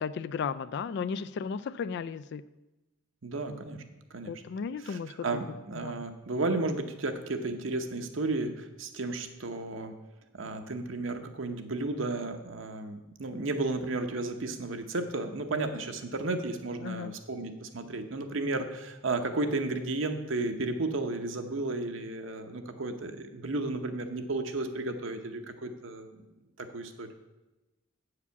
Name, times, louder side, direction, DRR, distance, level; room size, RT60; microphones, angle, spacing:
voice 1, 0.0-2.4 4.3-5.3 5.8-6.0 16.8-17.1, left 6 dB, 55° left, 16 dB, 0.3 m, -34 dB
voice 2, 3.2-3.8 4.1-4.4 4.8-9.9 10.4-26.2 26.6-27.1, right 2 dB, 75° right, 6 dB, 0.9 m, -33 dB
8.3 x 4.9 x 6.9 m, 1.0 s
head